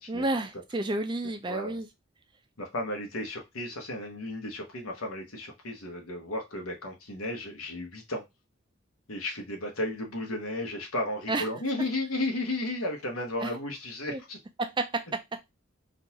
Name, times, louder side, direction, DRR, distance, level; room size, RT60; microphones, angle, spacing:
voice 1, 0.1-1.9 11.3-11.4 13.4-13.5 14.1-14.2 14.6-15.2, right 2 dB, 20° right, 0.4 m, -30 dB
voice 2, 1.5-1.8 2.6-8.2 9.1-14.4, left 1 dB, 85° left, 1.1 m, -34 dB
3.8 x 2.5 x 2.8 m
head